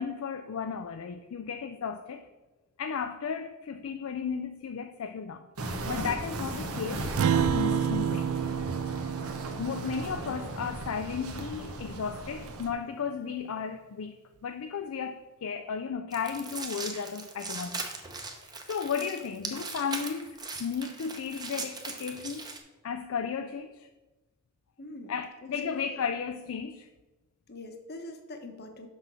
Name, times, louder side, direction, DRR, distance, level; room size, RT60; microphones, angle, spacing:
voice 1, 0.0-2.3 2.8-8.3 9.0-9.1 9.6-17.8 18.2-22.5 22.8-23.9 25.1-26.9, left 6 dB, 70° left, 0.4 m, -34 dB
sound 1, 5.6-12.7, right 2 dB, 90° right, 1.0 m, -36 dB
Acoustic guitar, 7.2-11.9, right 8 dB, 70° right, 0.3 m, -30 dB
sound 2, 16.1-22.6, right 3 dB, 20° right, 0.9 m, -39 dB
voice 2, 24.8-25.1 25.6-26.0 27.5-28.9, left 2 dB, 50° left, 1.1 m, -42 dB
6.2 x 5.8 x 6.1 m
head